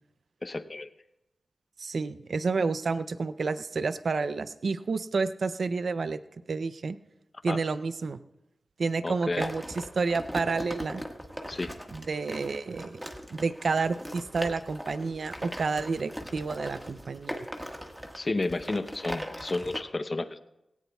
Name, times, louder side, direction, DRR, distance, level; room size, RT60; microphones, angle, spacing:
voice 1, 0.4-0.9 7.5-7.6 9.0-9.5 11.5-11.7 18.1-20.4, left 2 dB, 40° left, 11 dB, 0.7 m, -31 dB
voice 2, 1.8-6.2 6.5-7.0 7.4-8.2 8.8-11.0 11.9-13.0 13.3-17.5, right 4 dB, 70° right, 12 dB, 0.5 m, -30 dB
sound 1, 9.4-19.8, equal, 5° right, 1.6 m, -39 dB
17.5 x 17.0 x 2.3 m, 0.88 s
cardioid pair, 60°, 0 cm